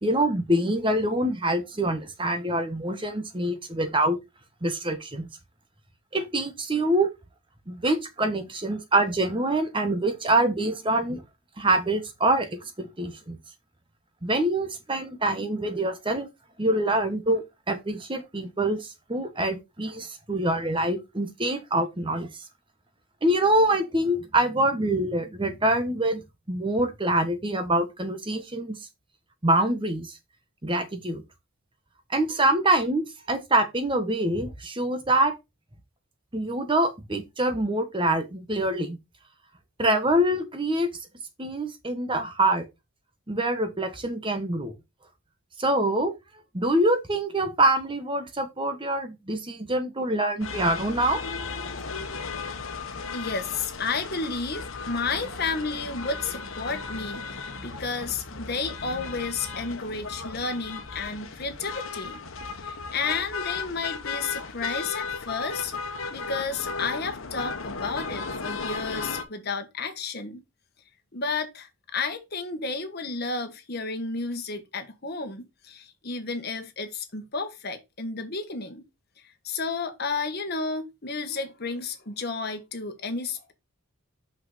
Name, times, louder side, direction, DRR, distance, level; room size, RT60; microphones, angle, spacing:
voice 1, 0.0-4.2 4.6-5.3 6.1-7.1 7.7-11.2 11.6-13.4 14.2-16.3 16.6-22.3 23.2-26.2 26.5-28.8 29.4-30.1 30.6-31.2 32.1-35.3 36.3-39.0 39.8-40.9 41.4-42.6 43.3-44.7 45.6-46.1 46.5-51.2, right 1 dB, 25° right, 1.2 m, -25 dB
sound 1, 50.4-69.2, left 4 dB, 70° left, 1.2 m, -35 dB
voice 2, 53.1-62.2 62.6-65.7 66.1-70.4 71.1-78.8 79.4-83.5, left 4 dB, 50° left, 1.5 m, -32 dB
5.9 x 5.6 x 4.0 m
head